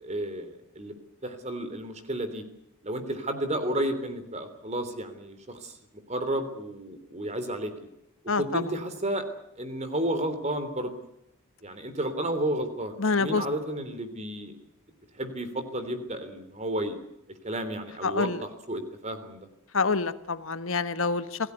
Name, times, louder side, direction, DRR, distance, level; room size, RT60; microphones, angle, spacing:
voice 1, 0.0-0.9 1.2-2.4 2.8-5.7 6.1-7.7 8.4-9.2 9.6-10.9 11.6-14.5 15.2-17.0 17.4-19.5, right 1 dB, 30° right, 10 dB, 3.4 m, -32 dB
voice 2, 8.3-8.6 13.0-13.4 18.0-18.4 19.7-21.4, left 4 dB, 65° left, 12 dB, 1.3 m, -26 dB
27.0 x 17.5 x 8.2 m, 0.85 s
head